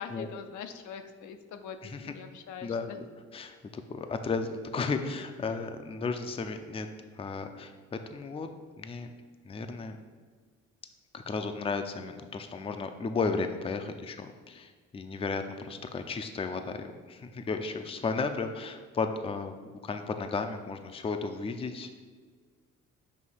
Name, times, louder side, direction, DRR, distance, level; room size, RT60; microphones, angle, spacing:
voice 1, 0.0-3.0, left 7 dB, 75° left, 7 dB, 0.6 m, -42 dB
voice 2, 1.8-2.1 2.6-3.0 3.3-6.9 7.2-9.1 9.5-10.0 11.1-19.5 19.8-22.0, left 4 dB, 20° left, 7 dB, 0.4 m, -34 dB
6.2 x 2.7 x 5.6 m, 1.5 s
cardioid pair, 90°, 30 cm